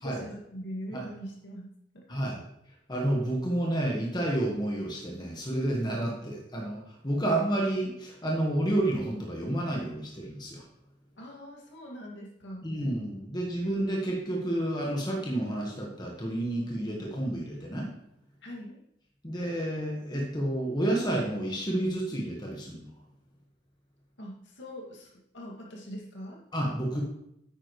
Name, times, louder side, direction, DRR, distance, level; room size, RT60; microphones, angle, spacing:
voice 1, 0.0-2.2 6.1-6.2 11.2-12.7 18.4-18.8 24.2-26.4, equal, 75° left, -1 dB, 2.2 m, -42 dB
voice 2, 2.1-2.4 2.9-10.6 12.6-17.9 19.2-22.9 26.5-27.0, right 1 dB, 20° left, -1 dB, 1.4 m, -30 dB
9.9 x 8.8 x 3.2 m, 0.78 s
head